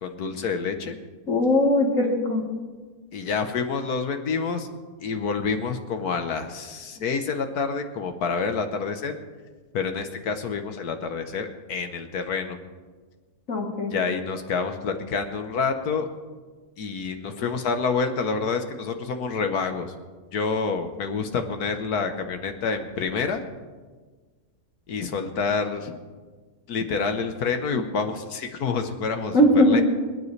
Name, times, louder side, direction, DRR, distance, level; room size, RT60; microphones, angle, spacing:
voice 1, 0.0-1.0 3.1-4.7 5.0-9.2 9.7-12.6 13.9-16.1 16.8-19.9 20.3-23.4 24.9-26.0 26.7-29.4 29.6-29.8, left 5 dB, 70° left, 7 dB, 1.5 m, -28 dB
voice 2, 1.3-2.5 13.5-13.9 29.3-29.8, left 1 dB, 55° left, 1 dB, 1.9 m, -20 dB
26.0 x 9.7 x 3.3 m, 1.4 s
omnidirectional pair, 1.7 m